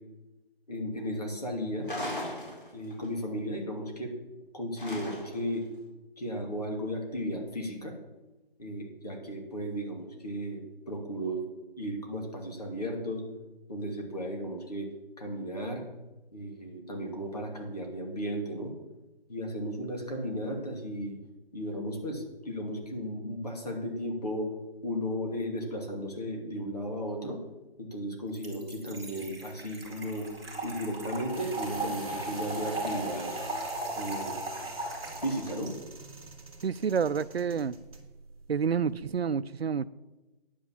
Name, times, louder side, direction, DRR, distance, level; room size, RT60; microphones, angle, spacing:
voice 1, 0.7-1.9 2.7-4.1 4.5-5.7 6.2-7.9 8.6-11.4 11.8-13.2 13.7-14.9 15.2-15.8 16.3-18.7 19.3-21.2 21.5-24.5 24.8-27.4 27.8-30.3 30.6-33.3 34.0-34.4 35.2-35.7, equal, 40° left, 1 dB, 2.6 m, -35 dB
sound 1, 1.8-3.1 4.8-5.5, left 1 dB, 60° left, 4.5 m, -37 dB
Trickle dribble / Fill (with liquid), 28.3-35.7, right 2 dB, 5° right, 1.6 m, -37 dB
sound 2, 29.1-39.2, right 3 dB, 35° right, 2.3 m, -46 dB
voice 2, 36.6-37.8 38.5-39.9, right 6 dB, 90° right, 17 dB, 0.6 m, -29 dB
10.0 x 8.7 x 7.3 m, 1.1 s
figure-of-eight pair, 180°, 30 cm